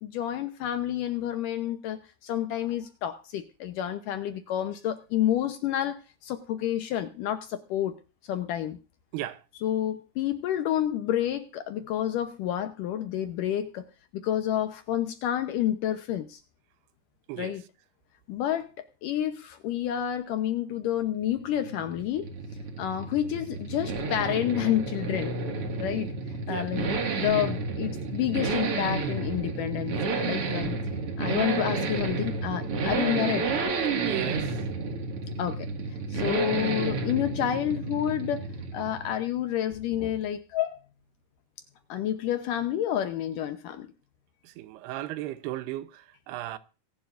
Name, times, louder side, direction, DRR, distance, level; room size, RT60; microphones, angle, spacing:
voice 1, 0.0-8.0 8.3-8.8 9.6-13.9 14.1-16.4 17.4-17.6 18.3-22.3 22.8-25.3 25.8-26.1 26.5-30.8 31.2-33.5 35.4-35.7 36.1-38.5 38.7-40.8 41.9-43.9, left 11 dB, 70° left, 2.1 m, -29 dB
sound 1, 21.2-39.3, right 4 dB, 45° right, 2.3 m, -31 dB
voice 2, 34.0-34.6 44.4-46.6, right 15 dB, 85° right, 2.9 m, -35 dB
24.5 x 11.0 x 2.5 m
omnidirectional pair, 4.6 m